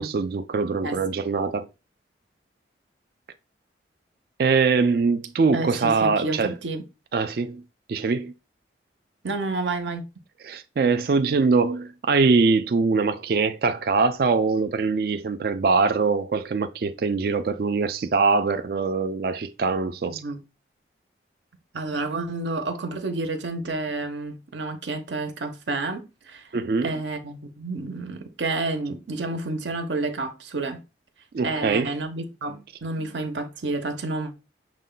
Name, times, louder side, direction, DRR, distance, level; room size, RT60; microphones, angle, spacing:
voice 1, 0.0-1.7 4.4-6.5 7.1-7.6 7.9-8.3 10.4-20.2 26.5-26.9 31.3-31.9, right 4 dB, 55° right, 0.3 m, -23 dB
voice 2, 5.5-6.8 9.2-10.1 20.0-20.4 21.7-26.5 26.8-30.8 31.4-34.4, right 2 dB, 80° right, 0.8 m, -30 dB
6.3 x 2.2 x 3.8 m
head